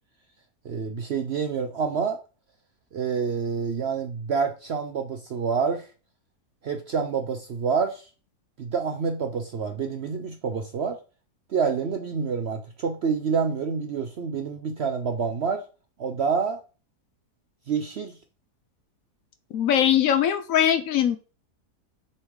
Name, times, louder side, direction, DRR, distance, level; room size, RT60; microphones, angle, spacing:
voice 1, 0.6-2.2 2.9-5.9 6.6-8.1 8.6-11.0 11.5-15.6 16.0-16.6 17.7-18.1, right 6 dB, 60° right, 6 dB, 0.7 m, -27 dB
voice 2, 19.5-21.2, left 10 dB, 65° left, 10 dB, 0.9 m, -21 dB
6.9 x 4.8 x 3.6 m, 0.35 s
omnidirectional pair, 1.7 m